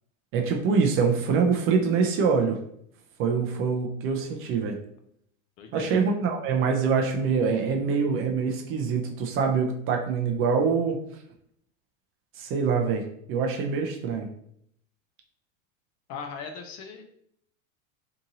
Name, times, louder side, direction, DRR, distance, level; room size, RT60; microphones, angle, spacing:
voice 1, 0.3-2.6 3.2-4.8 5.7-11.0 12.4-14.3, right 5 dB, 35° right, 2 dB, 0.4 m, -25 dB
voice 2, 5.6-6.0 16.1-17.0, left 6 dB, 40° left, 6 dB, 0.4 m, -38 dB
2.8 x 2.6 x 2.6 m, 0.68 s
hypercardioid pair, 110°, 41 cm